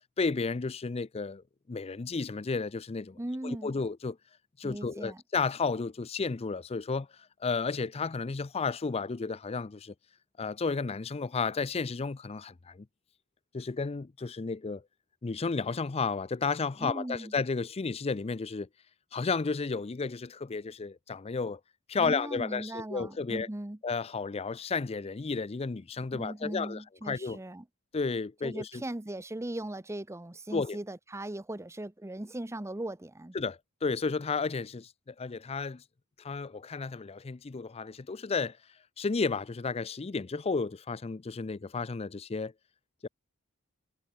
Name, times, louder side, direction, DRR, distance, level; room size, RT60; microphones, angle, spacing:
voice 1, 0.2-1.4 1.7-3.2 3.4-4.2 4.6-7.1 7.4-9.9 10.4-12.9 13.5-14.8 15.2-18.7 19.1-21.6 21.9-23.5 23.8-27.4 27.9-28.8 30.5-30.8 33.3-35.8 36.2-38.6 39.0-42.5 43.0-43.1, left 4 dB, 25° left, 0.4 m, -32 dB
voice 2, 3.1-3.7 4.6-5.2 16.8-17.3 22.0-23.8 26.1-27.6 28.4-33.3, right 1 dB, 10° right, 0.7 m, -38 dB
head